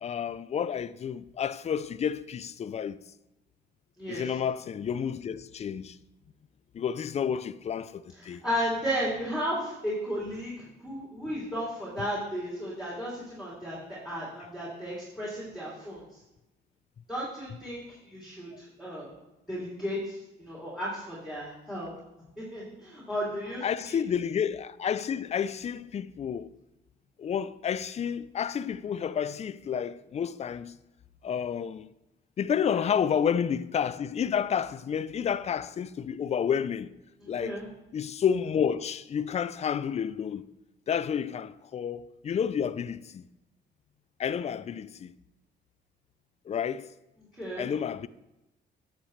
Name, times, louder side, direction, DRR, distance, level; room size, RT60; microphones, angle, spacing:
voice 1, 0.0-3.0 4.1-6.0 6.7-8.4 12.0-12.1 18.5-18.6 23.6-26.5 27.2-30.8 31.2-31.9 32.4-37.0 37.3-37.6 37.9-40.5 40.9-43.2 44.2-45.1 46.5-46.9 47.6-48.1, left 8 dB, 35° left, 0.4 m, -30 dB
voice 2, 8.4-16.0 17.1-19.1 19.5-21.9 22.4-24.0 32.7-32.8 37.2-37.7 47.4-47.7, equal, ahead, 2.9 m, -34 dB
9.8 x 7.4 x 3.2 m
cardioid pair, 90°, 20 cm